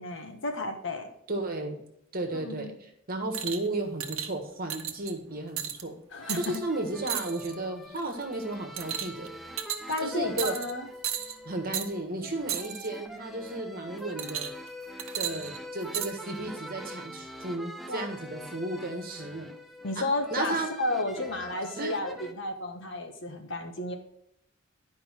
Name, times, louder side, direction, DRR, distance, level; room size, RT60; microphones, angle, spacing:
voice 1, 0.0-1.1 2.3-2.7 6.1-6.6 9.9-10.9 17.9-18.1 19.8-23.9, left 2 dB, 65° left, 4 dB, 1.4 m, -32 dB
voice 2, 1.3-1.8 2.1-5.9 6.4-9.3 10.0-10.5 11.4-14.5 15.2-19.5 19.9-20.7 21.4-21.5 21.8-21.9, right 2 dB, 45° right, 3 dB, 1.6 m, -34 dB
sound 1, 3.3-3.7 4.0-4.3 4.7-5.1 5.6-5.8 6.3-6.6 7.1-7.5 8.0-8.2 8.8-9.3 9.6-10.0 10.4-10.7 11.0-11.4 11.7-11.9 12.5-12.9 14.2-14.7 15.0-16.1 16.9-17.0, right 10 dB, 85° right, 0.9 m, -34 dB
sound 2, 6.2-22.3, equal, ahead, 0.6 m, -44 dB
10.5 x 5.3 x 4.5 m, 0.74 s
head